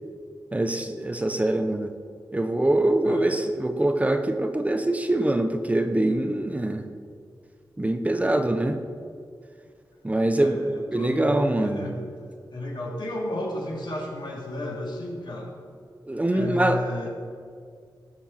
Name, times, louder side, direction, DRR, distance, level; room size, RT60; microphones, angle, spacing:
voice 1, 0.5-1.9 2.3-6.8 7.8-8.8 10.0-10.6 10.9-11.9 16.1-16.8, right 1 dB, 20° right, 6 dB, 0.8 m, -24 dB
voice 2, 3.0-3.4 8.4-8.8 10.4-12.2 12.5-15.5 16.3-17.1, left 1 dB, 70° left, -2 dB, 3.0 m, -33 dB
18.5 x 7.0 x 5.8 m, 2.2 s
wide cardioid pair, 120°, 8 cm